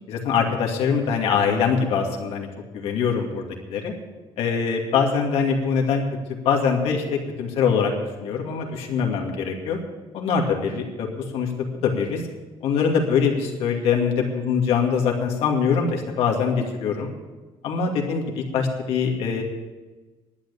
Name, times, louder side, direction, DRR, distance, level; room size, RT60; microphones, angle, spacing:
voice 1, 0.1-2.5 2.7-3.9 4.4-6.0 6.3-7.9 8.2-9.8 10.1-12.2 12.6-17.1 17.6-19.4, left 6 dB, 85° left, 1 dB, 2.4 m, -23 dB
11.5 x 9.2 x 8.3 m, 1.2 s
cardioid pair, 170°, 10 cm